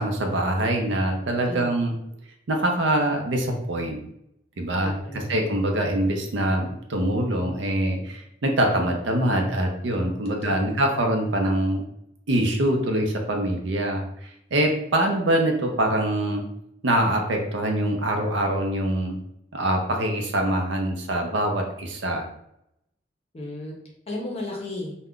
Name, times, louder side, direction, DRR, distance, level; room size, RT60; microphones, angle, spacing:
voice 1, 0.0-1.9 2.5-4.0 4.6-11.8 12.3-16.4 16.8-19.2 19.5-22.3, right 1 dB, 65° right, 3 dB, 0.5 m, -24 dB
voice 2, 1.4-1.8 4.8-5.3 10.3-10.8 23.3-23.8 24.1-24.9, left 2 dB, 35° left, -1 dB, 0.6 m, -34 dB
2.3 x 2.1 x 3.6 m, 0.78 s
head